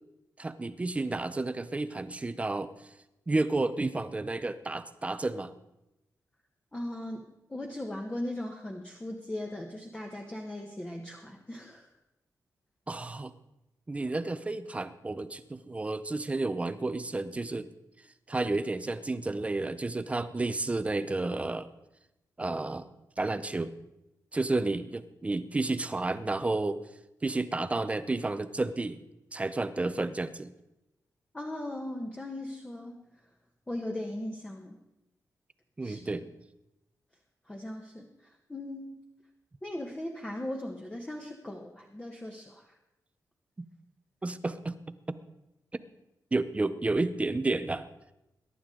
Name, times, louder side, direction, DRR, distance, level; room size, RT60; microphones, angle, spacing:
voice 1, 0.4-2.7 3.3-5.5 12.9-13.3 13.9-17.7 18.3-21.7 22.4-22.9 23.2-23.7 24.3-26.8 27.2-29.0 29.3-30.5 35.8-36.2 44.2-44.8 46.3-47.9, right 2 dB, 20° right, 12 dB, 0.6 m, -31 dB
voice 2, 6.7-11.9 31.3-33.1 33.7-34.8 35.8-36.0 37.5-39.0 39.6-42.6, left 1 dB, 15° left, 1 dB, 1.2 m, -38 dB
22.0 x 11.0 x 3.8 m, 0.91 s
wide cardioid pair, 150°, 7 cm